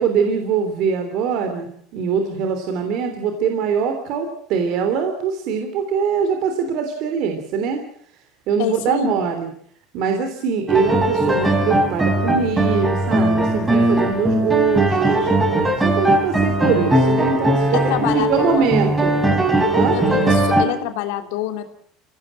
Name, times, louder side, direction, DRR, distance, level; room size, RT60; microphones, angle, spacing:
voice 1, 0.0-7.8 8.5-9.5 9.9-15.3 15.8-19.1 19.7-20.0, right 6 dB, 60° right, 6 dB, 3.2 m, -22 dB
voice 2, 8.6-9.1 17.7-18.8 19.9-21.7, left 12 dB, 80° left, 6 dB, 2.9 m, -26 dB
sound 1, 10.7-20.6, right 1 dB, 10° right, 3.6 m, -19 dB
25.0 x 17.0 x 7.7 m, 0.65 s
cardioid pair, 135°, 0 cm